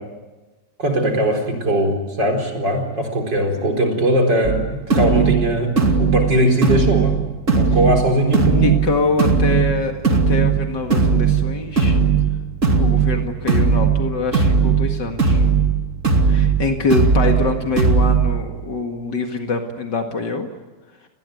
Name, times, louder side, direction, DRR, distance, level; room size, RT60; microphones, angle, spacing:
voice 1, 0.8-5.7 6.0-7.2 7.5-8.8, right 1 dB, 85° right, 3 dB, 5.0 m, -20 dB
sound 1, 4.4-18.4, right 5 dB, 45° right, 2.9 m, -18 dB
voice 2, 8.6-12.0 12.8-15.5 16.3-20.5, left 3 dB, 75° left, 4 dB, 2.6 m, -24 dB
30.0 x 20.5 x 9.3 m, 1.2 s
omnidirectional pair, 1.9 m